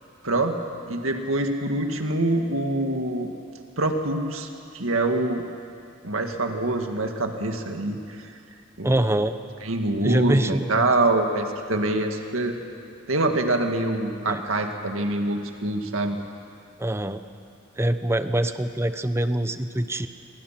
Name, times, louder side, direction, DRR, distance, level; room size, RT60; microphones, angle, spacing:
voice 1, 0.2-0.6 0.9-3.3 3.8-4.5 4.7-5.4 6.0-8.3 8.8-8.9 9.6-12.5 13.1-16.2, right 2 dB, 80° right, 4 dB, 2.0 m, -25 dB
voice 2, 8.8-9.4 10.0-10.8 14.3-14.4 16.8-17.2 17.8-20.1, right 1 dB, 15° right, 10 dB, 0.8 m, -24 dB
27.0 x 23.5 x 6.0 m, 2.5 s
head